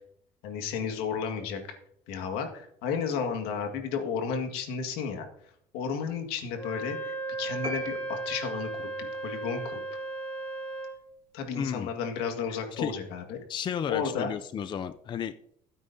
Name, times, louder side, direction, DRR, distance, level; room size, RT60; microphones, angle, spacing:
voice 1, 0.4-1.6 2.1-5.3 5.7-8.9 9.2-9.8 11.3-13.4 13.9-14.3, left 6 dB, 80° left, 5 dB, 1.9 m, -32 dB
Wind instrument woodwind instrument, 6.5-11.0, right 2 dB, 10° left, 3.3 m, -36 dB
sound 1, 7.6-8.9, right 1 dB, 35° right, 3.0 m, -39 dB
voice 2, 11.6-11.9 12.5-12.9 13.5-15.5, left 8 dB, 30° left, 11 dB, 0.4 m, -33 dB
16.0 x 9.2 x 2.7 m, 0.70 s
cardioid pair, 125°, 16 cm